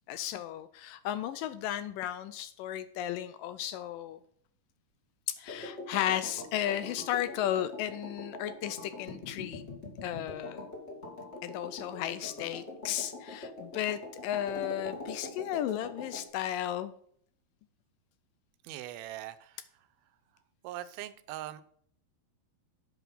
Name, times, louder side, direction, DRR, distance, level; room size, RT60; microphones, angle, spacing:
voice 1, 0.1-4.2 5.3-9.7 10.0-10.7 11.4-16.9, left 11 dB, 80° left, 13 dB, 2.0 m, -34 dB
sound 1, 5.5-16.3, left 2 dB, 25° left, 1.6 m, -43 dB
voice 2, 18.6-19.6 20.6-21.6, right 13 dB, 85° right, 11 dB, 2.5 m, -41 dB
8.3 x 6.0 x 5.4 m, 0.62 s
omnidirectional pair, 4.3 m